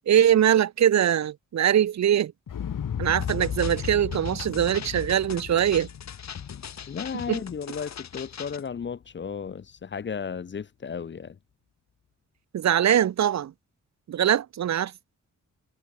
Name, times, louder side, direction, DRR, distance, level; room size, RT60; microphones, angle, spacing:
voice 1, 0.1-2.3 3.0-5.9 7.3-7.4 12.5-13.5 14.1-14.9, right 10 dB, 60° right, 0.5 m, -22 dB
Explosion, 2.5-8.5 8.8-8.9, left 8 dB, 80° left, 3.0 m, -35 dB
sound 1, 3.2-8.7, left 8 dB, 55° left, 1.2 m, -41 dB
voice 2, 6.9-11.4, left 6 dB, 35° left, 0.6 m, -34 dB
wide cardioid pair, 140°, 32 cm